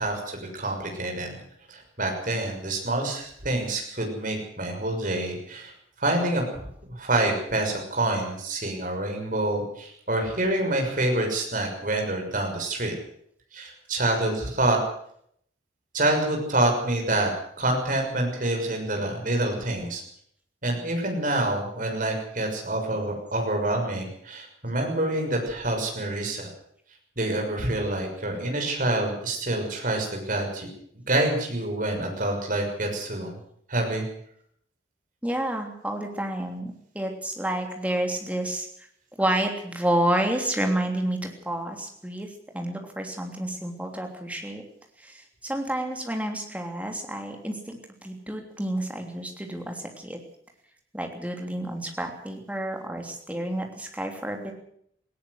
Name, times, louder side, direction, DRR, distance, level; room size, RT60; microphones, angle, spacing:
voice 1, 0.0-1.4 1.7-5.7 6.0-12.9 13.5-14.8 15.9-17.3 17.6-20.0 20.6-26.5 27.2-30.7 31.0-33.4 33.7-34.0, right 1 dB, 45° right, 2 dB, 6.4 m, -27 dB
voice 2, 35.2-38.9 39.2-42.3 42.5-44.6 45.0-50.2 50.9-54.5, right 1 dB, 5° right, 3 dB, 3.2 m, -30 dB
19.0 x 17.0 x 8.1 m, 0.68 s
head